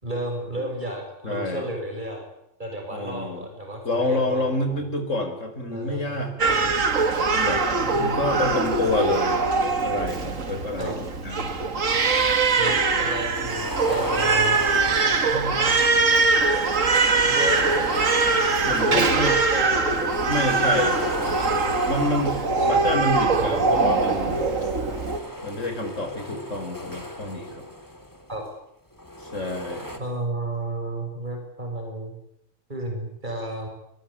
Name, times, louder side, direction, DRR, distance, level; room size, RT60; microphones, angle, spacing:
voice 1, 0.0-2.2 2.6-4.8 5.7-6.2 7.8-8.6 10.8-11.0 12.6-14.6 15.3-15.7 17.2-17.6 18.9-20.1 22.2-23.9 28.3-28.4 30.0-32.1 32.7-33.7, right 1 dB, 35° right, 2 dB, 7.0 m, -32 dB
voice 2, 1.2-1.7 2.9-3.5 3.9-7.6 8.0-11.6 14.9-15.1 18.6-19.3 20.3-24.4 25.4-27.6 29.2-30.0, left 2 dB, 75° left, 7 dB, 5.3 m, -28 dB
Crying sobbing, 6.4-25.2, right 4 dB, 85° right, 2.3 m, -22 dB
sound 1, 13.2-15.8 16.4-19.3 19.7-22.9 23.5-28.3 28.9-30.0, equal, 15° left, 2.9 m, -35 dB
28.5 x 22.5 x 8.8 m, 0.79 s
omnidirectional pair, 1.3 m